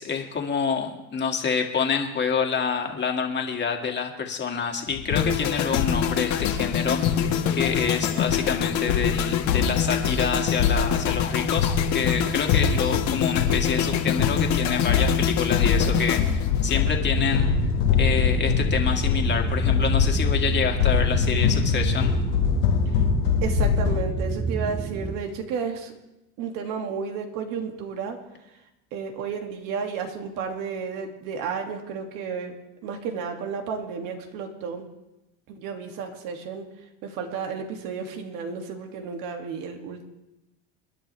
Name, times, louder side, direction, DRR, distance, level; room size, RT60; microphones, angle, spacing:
voice 1, 0.0-17.5 18.0-22.2, left 6 dB, 30° left, 3 dB, 2.4 m, -27 dB
sound 1, 4.9-24.0, left 6 dB, 85° left, 2.0 m, -24 dB
sound 2, 5.2-17.3 17.6-17.9, left 9 dB, 50° left, 2.0 m, -26 dB
sound 3, 17.0-25.2, right 4 dB, 25° right, 1.6 m, -30 dB
voice 2, 23.4-25.9 26.4-28.2 28.9-32.5 32.8-34.8 35.5-36.7 37.0-40.0, right 6 dB, 65° right, 3 dB, 2.6 m, -32 dB
27.5 x 11.0 x 3.5 m, 0.97 s
supercardioid pair, 115°, 35 cm